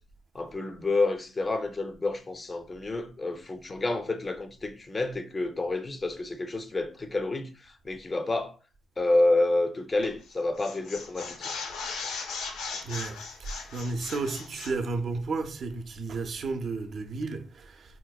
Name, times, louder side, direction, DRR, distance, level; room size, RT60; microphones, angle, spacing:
voice 1, 0.3-8.6 9.0-11.5, left 2 dB, 25° left, 0.4 m, -29 dB
sound 1, 10.0-10.3 10.6-14.8, left 4 dB, 85° left, 0.6 m, -38 dB
voice 2, 12.8-18.0, right 3 dB, 55° right, 0.4 m, -33 dB
4.3 x 2.1 x 2.3 m
cardioid pair, 90°, 0 cm